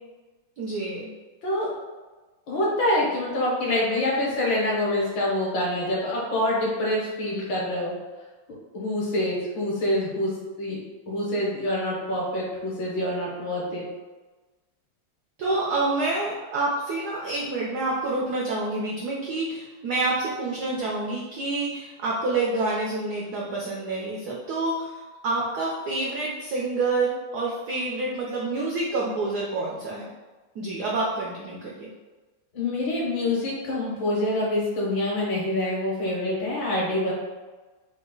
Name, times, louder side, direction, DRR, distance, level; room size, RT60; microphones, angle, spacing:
voice 1, 0.6-1.1 15.4-30.1 30.6-31.9, right 2 dB, 85° right, -3 dB, 0.8 m, -28 dB
voice 2, 2.5-7.9 8.7-10.8 11.1-13.8 15.4-15.5 32.5-37.1, left 1 dB, 65° left, -4 dB, 1.7 m, -26 dB
4.0 x 2.3 x 3.7 m, 1.2 s
omnidirectional pair, 2.3 m